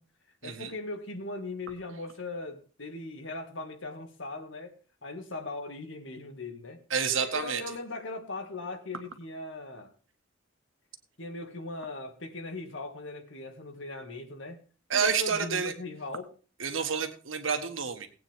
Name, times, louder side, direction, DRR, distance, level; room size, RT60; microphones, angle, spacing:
voice 1, 0.4-4.7 5.0-6.8 7.2-9.9 11.2-14.6 14.9-16.3, left 2 dB, 75° left, 2.1 m, -39 dB
voice 2, 6.9-7.6 14.9-15.7 16.6-18.1, right 6 dB, 90° right, 1.7 m, -29 dB
18.5 x 9.0 x 3.6 m
head